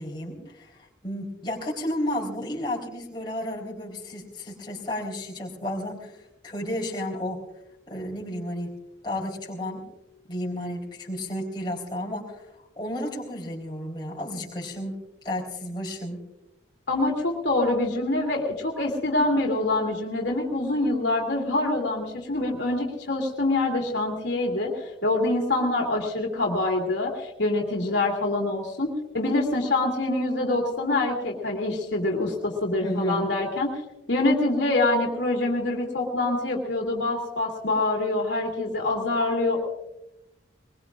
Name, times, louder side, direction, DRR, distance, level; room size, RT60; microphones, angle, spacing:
voice 1, 0.0-7.4 7.9-8.7 9.0-9.9 10.3-12.5 12.8-15.0 15.2-16.2 32.8-33.3, left 1 dB, 25° left, -3 dB, 3.9 m, -32 dB
voice 2, 16.9-24.7 25.0-33.8 34.1-39.6, left 2 dB, 70° left, 1 dB, 2.6 m, -25 dB
22.0 x 21.5 x 2.5 m, 0.93 s
head